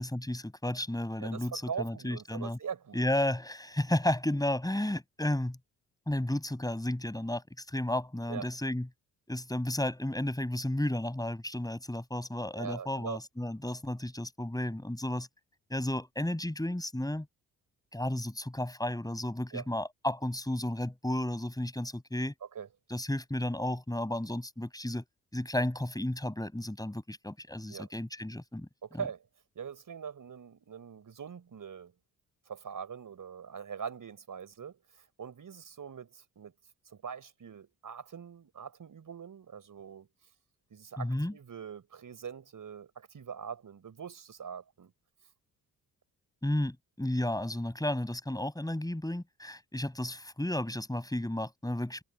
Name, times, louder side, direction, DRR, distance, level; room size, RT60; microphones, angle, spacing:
voice 1, 0.0-2.6 2.9-5.6 6.1-8.9 9.3-15.3 15.7-17.3 17.9-22.3 22.9-25.0 25.3-28.7 28.9-29.0 41.0-41.3 46.4-52.0, left 1 dB, 10° left, 7.4 m, -33 dB
voice 2, 1.2-3.0 8.3-8.5 12.6-13.2 19.5-19.6 22.5-22.7 27.6-27.9 28.8-29.3 29.5-31.9 32.5-36.5 36.8-40.1 40.7-44.9, right 7 dB, 45° right, 4.7 m, -42 dB
hypercardioid pair, 45°, 43 cm